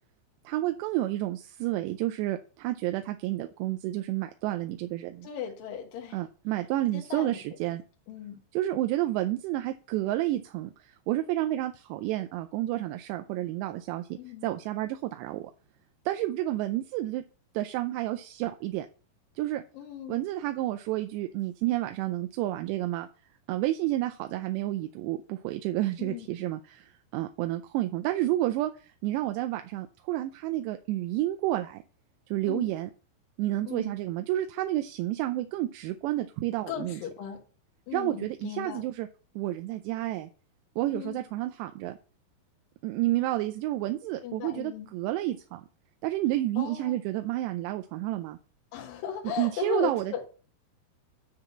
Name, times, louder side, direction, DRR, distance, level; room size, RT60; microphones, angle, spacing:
voice 1, 0.5-5.3 6.1-7.8 8.5-15.5 16.1-17.2 17.5-18.9 19.4-19.6 20.1-23.1 23.5-31.8 32.3-32.9 33.4-37.0 37.9-39.1 39.4-40.3 40.8-42.0 42.8-45.7 46.0-48.4 49.4-50.2, right 15 dB, 85° right, 2.7 m, -30 dB
voice 2, 5.2-6.2 6.9-7.4 8.1-8.4 14.2-14.5 19.7-20.2 26.0-26.3 32.5-32.7 33.7-33.9 36.7-37.4 37.9-38.8 40.9-41.2 44.2-44.9 46.6-47.0 48.7-50.2, left 8 dB, 65° left, 2.7 m, -37 dB
9.7 x 3.9 x 7.2 m
omnidirectional pair, 5.0 m